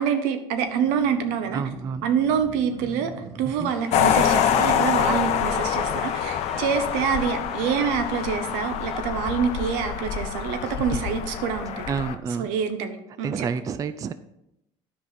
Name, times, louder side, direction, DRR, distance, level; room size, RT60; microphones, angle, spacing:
voice 1, 0.0-1.6 2.0-11.8 12.4-13.5, right 7 dB, 85° right, 8 dB, 1.0 m, -26 dB
sound 1, 0.5-6.1 6.6-8.5, right 3 dB, 50° right, 1.6 m, -45 dB
voice 2, 1.5-2.1 3.4-3.7 10.6-11.0 11.9-12.5 13.2-14.1, right 6 dB, 30° right, 13 dB, 0.4 m, -30 dB
sound 2, 3.6-9.0, left 1 dB, ahead, 0.9 m, -39 dB
sound 3, 3.9-12.2, left 9 dB, 60° left, 0.7 m, -25 dB
10.0 x 5.3 x 4.0 m, 0.85 s
cardioid pair, 120°, 13 cm